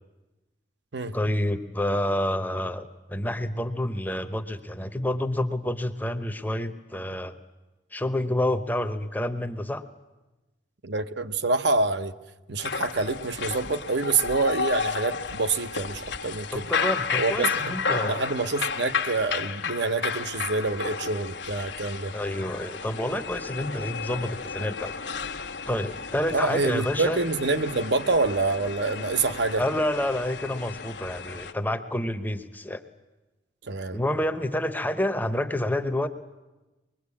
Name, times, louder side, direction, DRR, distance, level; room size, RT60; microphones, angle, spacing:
voice 1, 1.1-7.3 7.9-9.8 16.5-18.3 22.1-24.9 25.7-27.2 29.6-32.8 33.9-36.1, left 1 dB, 10° left, 9 dB, 0.9 m, -28 dB
voice 2, 10.8-12.1 12.5-16.7 17.2-17.7 18.0-22.1 26.3-29.6 33.7-34.0, right 3 dB, 60° right, 10 dB, 0.9 m, -26 dB
sound 1, 12.6-31.5, left 5 dB, 65° left, 1.3 m, -32 dB
24.5 x 21.5 x 8.4 m, 1.1 s
head